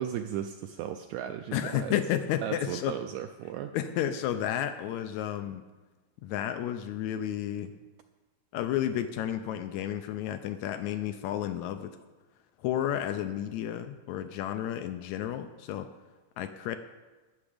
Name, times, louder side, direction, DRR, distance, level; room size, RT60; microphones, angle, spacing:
voice 1, 0.0-2.0 2.4-3.8, right 10 dB, 80° right, 7 dB, 1.7 m, -36 dB
voice 2, 1.5-3.0 3.7-5.6 6.2-7.7 8.5-12.0 12.6-15.9 16.4-16.8, left 11 dB, 90° left, 9 dB, 1.6 m, -32 dB
19.0 x 7.0 x 5.0 m, 1.3 s
omnidirectional pair, 3.9 m